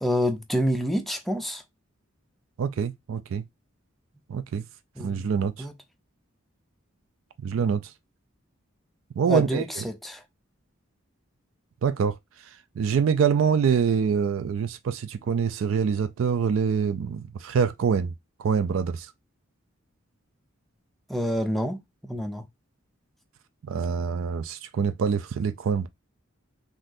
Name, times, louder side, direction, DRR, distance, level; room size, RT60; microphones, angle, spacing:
voice 1, 0.0-1.6 5.0-5.3 5.6-5.7 9.3-10.2 21.1-22.5, equal, ahead, 0.4 m, -28 dB
voice 2, 2.6-3.4 4.3-4.7 5.0-5.7 7.4-7.9 9.2-9.6 11.8-18.1 18.4-19.1 23.6-25.9, right 6 dB, 75° right, 0.3 m, -25 dB
3.8 x 2.6 x 2.5 m
head